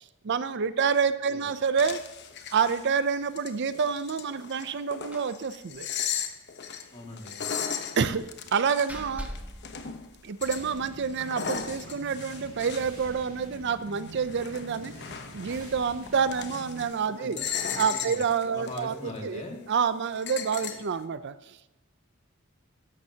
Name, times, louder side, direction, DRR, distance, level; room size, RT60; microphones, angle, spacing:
voice 1, 0.0-2.0 2.5-5.9 8.0-9.3 10.2-14.9 15.3-17.4 17.7-19.4 19.7-21.6, right 6 dB, 55° right, 13 dB, 0.5 m, -28 dB
sound 1, 1.8-2.9 3.2-10.1 10.4-13.6 13.9-17.0 17.3-18.8 19.2-19.3 20.1-20.8, left 7 dB, 55° left, 0.9 m, -37 dB
Slam, 5.1-5.4 5.7-5.8 6.1-6.3 8.0-10.6, equal, 5° right, 1.2 m, -43 dB
voice 2, 6.9-7.5 17.2-18.2 18.5-19.6, left 2 dB, 35° left, 1 dB, 2.1 m, -41 dB
sound 2, 10.4-16.9, right 1 dB, 70° right, 2.6 m, -46 dB
13.5 x 10.5 x 2.8 m, 0.96 s
head